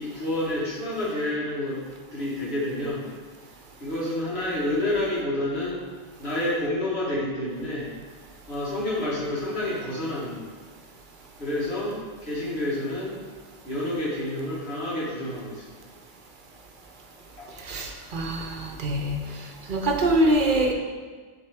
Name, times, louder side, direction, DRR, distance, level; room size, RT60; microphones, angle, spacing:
voice 1, 0.0-1.8 2.1-3.1 3.8-5.8 6.2-7.9 8.5-10.5 11.4-13.2 13.6-15.7 17.4-17.5, left 1 dB, 80° left, -7 dB, 1.9 m, -29 dB
voice 2, 17.6-19.2 19.7-20.7, right 1 dB, 55° right, 2 dB, 0.8 m, -24 dB
9.9 x 3.6 x 3.4 m, 1.5 s
omnidirectional pair, 1.1 m